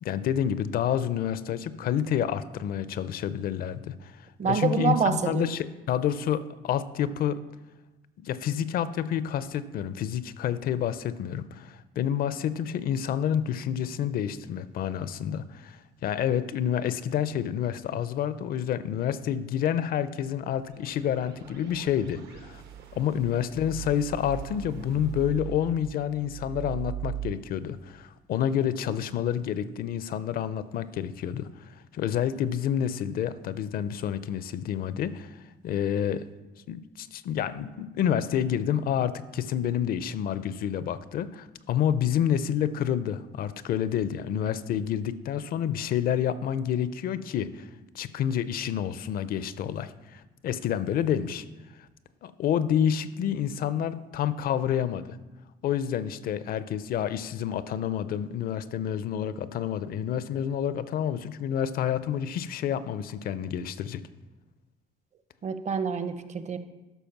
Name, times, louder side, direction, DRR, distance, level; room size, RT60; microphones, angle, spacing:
voice 1, 0.0-7.4 8.2-22.6 22.9-35.4 35.6-36.2 36.7-47.7 47.9-51.4 52.2-55.2 55.6-64.0, left 9 dB, 60° left, 15 dB, 0.5 m, -29 dB
voice 2, 4.4-5.5 65.4-66.6, right 6 dB, 45° right, 11 dB, 0.7 m, -27 dB
sound 1, 20.4-27.3, right 10 dB, 75° right, 1.0 m, -40 dB
12.5 x 4.4 x 5.9 m, 1.1 s
cardioid pair, 110°, 17 cm